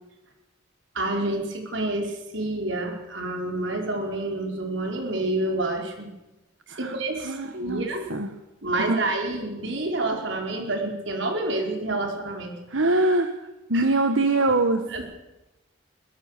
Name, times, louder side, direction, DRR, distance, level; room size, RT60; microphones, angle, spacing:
voice 1, 0.9-6.1 6.8-8.1 8.6-12.5 13.7-13.9 14.4-14.5 14.9-15.0, right 2 dB, 65° right, 3 dB, 5.0 m, -28 dB
voice 2, 7.2-8.3 8.8-9.0 12.7-13.3 13.7-14.9, right 2 dB, 85° right, 7 dB, 1.6 m, -23 dB
22.5 x 20.5 x 6.9 m, 1.0 s
head